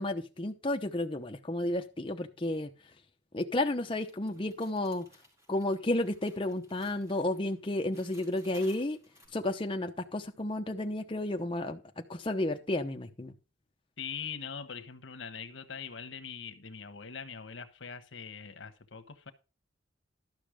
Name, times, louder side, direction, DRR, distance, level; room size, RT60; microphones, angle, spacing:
voice 1, 0.0-2.7 3.3-5.1 5.5-9.0 9.3-11.8 12.1-13.3, left 1 dB, 25° left, 0.8 m, -32 dB
sound 1, 3.9-9.3, equal, 15° right, 4.5 m, -59 dB
voice 2, 14.0-19.3, left 6 dB, 80° left, 1.2 m, -42 dB
12.5 x 6.4 x 4.9 m
head